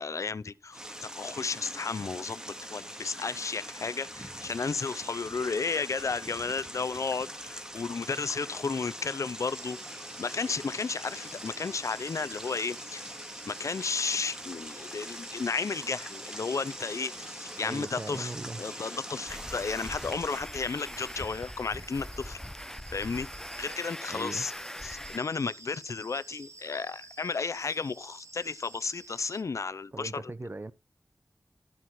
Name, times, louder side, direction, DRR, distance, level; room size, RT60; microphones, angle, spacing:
voice 1, 0.0-2.4 2.7-13.1 13.5-18.3 18.6-22.4 22.9-23.3 23.6-24.5 24.8-30.3, left 4 dB, 85° left, 0.6 m, -33 dB
sound 1, 0.7-20.4, equal, 15° right, 2.2 m, -42 dB
sound 2, 9.5-29.4, right 3 dB, 65° right, 1.5 m, -52 dB
voice 2, 17.6-18.6 24.1-24.5 29.9-30.7, right 2 dB, 40° right, 1.1 m, -39 dB
sound 3, 19.3-25.2, left 1 dB, 10° left, 0.5 m, -41 dB
13.0 x 5.8 x 4.8 m
wide cardioid pair, 60°, 5 cm